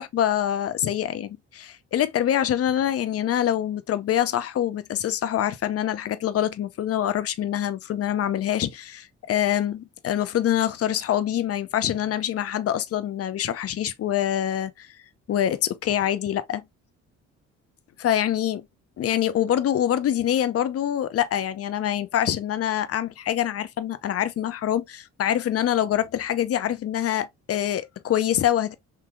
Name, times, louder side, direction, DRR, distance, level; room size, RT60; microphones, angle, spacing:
voice 1, 0.0-14.9 15.3-16.6 18.0-18.6 19.0-28.7, left 11 dB, 50° left, 0.6 m, -25 dB
3.8 x 2.9 x 2.3 m
cardioid pair, 90°, 30 cm